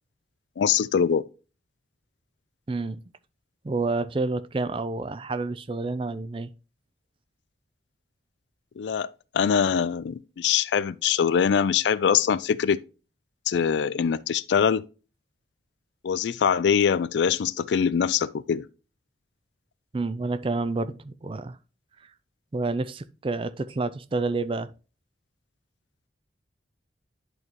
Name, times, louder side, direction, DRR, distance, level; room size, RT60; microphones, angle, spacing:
voice 1, 0.6-1.2 8.8-12.8 13.5-14.8 16.0-18.6, left 7 dB, 75° left, 0.3 m, -23 dB
voice 2, 2.7-3.0 3.6-6.5 19.9-21.6 22.5-24.7, right 3 dB, 30° right, 0.4 m, -29 dB
10.5 x 4.0 x 3.0 m
head